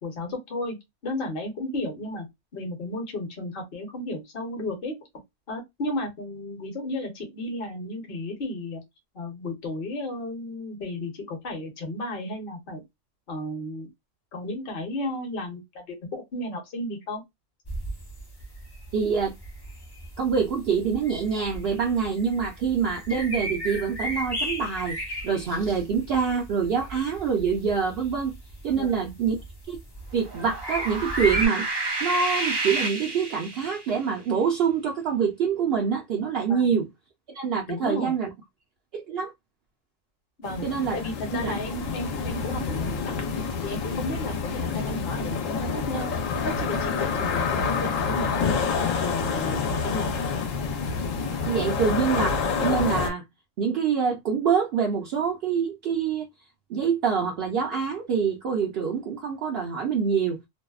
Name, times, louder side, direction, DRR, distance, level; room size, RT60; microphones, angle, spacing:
voice 1, 0.0-0.8 1.0-2.3 2.5-4.9 5.5-8.8 9.1-12.8 13.3-13.9 14.3-17.2 28.7-29.1 36.5-36.8 37.7-38.1 40.4-40.7 40.9-43.3 43.6-46.1 46.4-48.7 49.0-50.1, left 1 dB, 50° left, 1.0 m, -33 dB
sound 1, 17.7-31.5, equal, 30° left, 0.5 m, -36 dB
voice 2, 18.9-19.3 20.2-25.0 25.2-28.3 28.6-29.4 29.7-29.8 30.1-31.7 32.0-36.9 37.3-38.3 38.9-39.3 40.6-41.0 41.3-41.6 51.4-53.2 53.6-56.3 56.7-60.4, right 6 dB, 60° right, 0.7 m, -25 dB
sound 2, 30.2-33.9, right 2 dB, 40° right, 0.3 m, -30 dB
sound 3, 40.4-53.1, left 5 dB, 85° left, 1.0 m, -28 dB
2.6 x 2.0 x 2.3 m
omnidirectional pair, 1.3 m